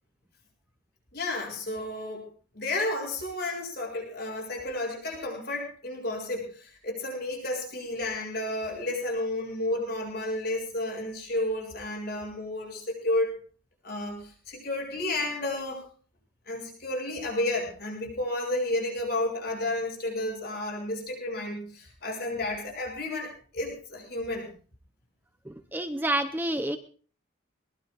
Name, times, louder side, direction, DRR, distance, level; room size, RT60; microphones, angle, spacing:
voice 1, 1.1-2.3 2.5-13.3 13.8-15.8 16.5-24.5, left 1 dB, 50° left, 0 dB, 7.3 m, -32 dB
voice 2, 25.5-26.8, right 1 dB, 10° right, 8 dB, 0.7 m, -29 dB
22.0 x 21.5 x 2.5 m, 0.42 s
head